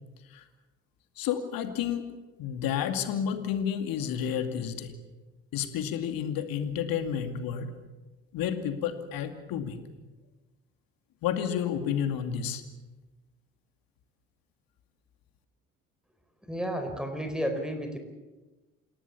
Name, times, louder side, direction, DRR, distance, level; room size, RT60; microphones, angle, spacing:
voice 1, 1.2-2.0 2.4-4.9 5.5-7.7 8.3-9.8 11.2-12.6, left 8 dB, 60° left, 8 dB, 2.5 m, -30 dB
voice 2, 16.5-18.0, equal, ahead, 6 dB, 4.4 m, -32 dB
28.0 x 18.5 x 7.1 m, 1.2 s
figure-of-eight pair, 50°, 39 cm